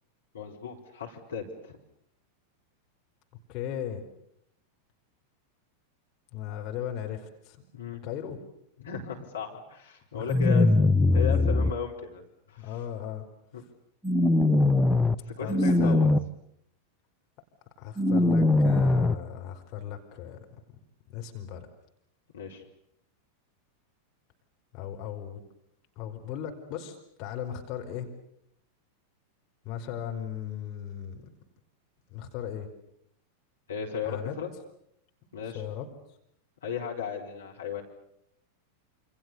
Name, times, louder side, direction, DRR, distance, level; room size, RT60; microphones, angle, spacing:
voice 1, 0.3-1.8 7.7-8.0 8.8-10.7 11.1-12.2 12.5-12.7 13.5-13.6 15.3-16.1 22.3-22.6 33.7-34.5 35.3-35.6 36.6-37.8, left 7 dB, 65° left, 2 dB, 4.8 m, -36 dB
voice 2, 3.5-4.0 6.3-7.6 8.0-8.4 10.1-10.7 11.0-11.3 12.6-13.2 15.4-16.3 17.8-20.6 21.1-21.7 24.7-25.4 26.0-28.1 29.6-31.3 32.1-32.7 34.0-34.3 35.2-35.9, left 9 dB, 40° left, 2 dB, 4.7 m, -37 dB
sound 1, 10.3-11.7 14.0-15.1 15.5-16.2 18.0-19.1, left 2 dB, ahead, 1.1 m, -21 dB
28.0 x 28.0 x 6.9 m, 0.73 s
figure-of-eight pair, 90°, 0 cm